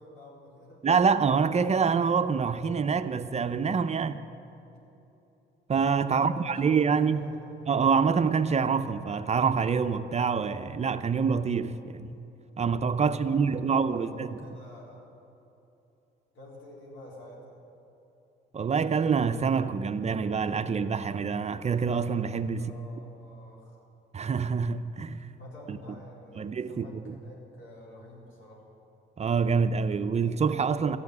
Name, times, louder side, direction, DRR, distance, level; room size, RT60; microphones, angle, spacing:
voice 1, 0.0-0.8 6.0-7.7 13.0-15.0 16.3-17.6 22.5-23.8 25.3-28.7, left 1 dB, 75° left, 3.9 m, -48 dB
voice 2, 0.8-4.2 5.7-7.3 7.7-12.2 12.6-14.4 18.5-22.7 24.1-25.3 25.7-25.8 26.4-27.1 29.2-31.0, right 5 dB, 35° right, 0.5 m, -26 dB
13.5 x 7.0 x 9.6 m
cardioid pair, 90°, 20 cm